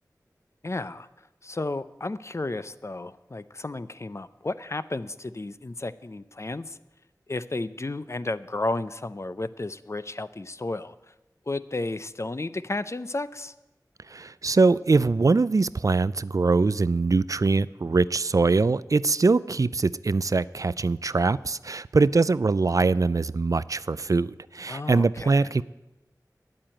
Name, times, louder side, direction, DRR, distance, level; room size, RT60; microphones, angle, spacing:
voice 1, 0.6-1.1 1.4-6.8 7.3-10.9 11.5-13.5 24.7-25.5, left 2 dB, 40° left, 14 dB, 0.5 m, -33 dB
voice 2, 14.1-25.6, right 3 dB, 55° right, 18 dB, 0.4 m, -23 dB
9.5 x 8.7 x 8.9 m, 1.0 s
wide cardioid pair, 40°, 7 cm